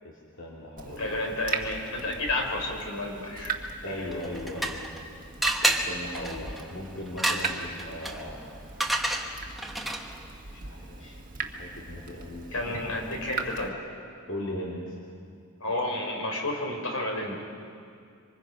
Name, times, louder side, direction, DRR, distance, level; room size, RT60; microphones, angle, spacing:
voice 1, 0.0-1.4 3.8-4.8 5.6-8.4 10.5-11.0 11.4-12.9 14.3-15.0, left 1 dB, 60° left, -4 dB, 3.2 m, -38 dB
Water tap faucet / Drip, 0.8-13.7, right 4 dB, 40° right, 1.6 m, -39 dB
voice 2, 1.0-4.0 5.4-5.6 11.0-11.2 12.5-13.7 15.6-17.4, left 2 dB, 80° left, 1 dB, 4.0 m, -31 dB
sound 1, 4.1-5.0 5.4-10.2, right 1 dB, ahead, 1.3 m, -30 dB
26.5 x 25.0 x 5.3 m, 2.3 s
head